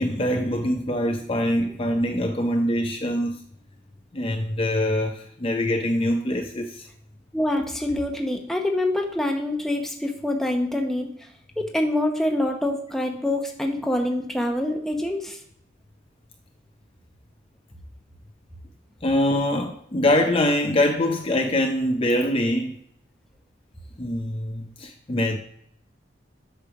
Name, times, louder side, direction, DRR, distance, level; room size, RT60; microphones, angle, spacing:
voice 1, 0.0-3.3 4.1-6.9 19.0-22.8 24.0-25.4, left 1 dB, 30° left, 4 dB, 0.6 m, -24 dB
voice 2, 7.3-11.1 11.6-15.4, left 1 dB, ahead, 2 dB, 0.9 m, -25 dB
8.4 x 3.3 x 5.9 m, 0.69 s
head